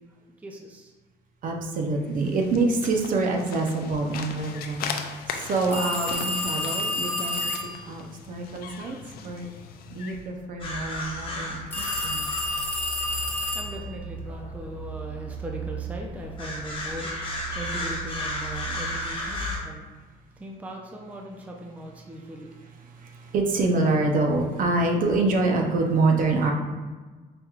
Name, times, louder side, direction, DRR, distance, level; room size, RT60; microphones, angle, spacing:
voice 1, 0.4-0.9 13.5-19.9 20.4-22.5, equal, 10° right, 0 dB, 0.4 m, -39 dB
voice 2, 1.4-4.9 5.3-7.4 7.8-9.0 9.2-9.5 9.9-12.5 22.8-26.5, right 3 dB, 55° right, 1 dB, 0.7 m, -26 dB
sound 1, 2.0-10.3, left 6 dB, 65° left, 0.4 m, -39 dB
sound 2, 5.7-7.8 11.7-13.9, left 1 dB, 10° left, 0.8 m, -29 dB
sound 3, 10.6-19.6, equal, 30° left, 1.1 m, -34 dB
5.0 x 3.0 x 2.4 m, 1.3 s
cardioid pair, 110°, 17 cm